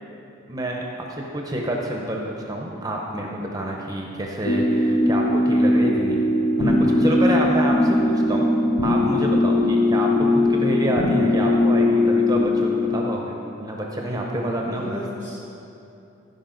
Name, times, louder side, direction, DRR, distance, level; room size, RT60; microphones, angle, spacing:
voice 1, 0.5-6.2 6.6-6.7 7.0-8.5 8.8-15.0, right 1 dB, 20° right, 0 dB, 0.7 m, -28 dB
sound 1, 4.4-13.2, left 1 dB, 45° left, 0.5 m, -20 dB
voice 2, 6.6-7.4 14.6-15.3, equal, 60° left, -9 dB, 1.7 m, -31 dB
16.0 x 5.4 x 3.9 m, 2.8 s
head